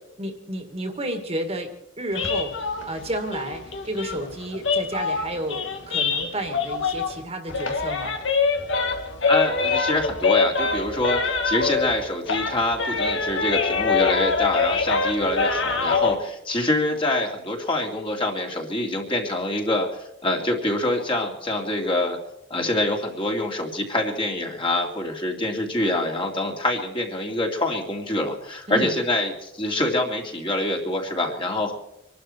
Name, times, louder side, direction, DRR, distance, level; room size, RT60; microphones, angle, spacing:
voice 1, 0.2-8.2 28.7-29.0, right 1 dB, 35° right, 5 dB, 2.0 m, -31 dB
sound 1, 2.1-7.2 7.5-12.0 12.3-16.1, left 4 dB, 75° left, 2.1 m, -24 dB
voice 2, 9.3-19.9 20.2-22.2 22.5-31.7, left 1 dB, 30° left, 1 dB, 2.6 m, -25 dB
25.5 x 12.0 x 4.5 m, 0.81 s
head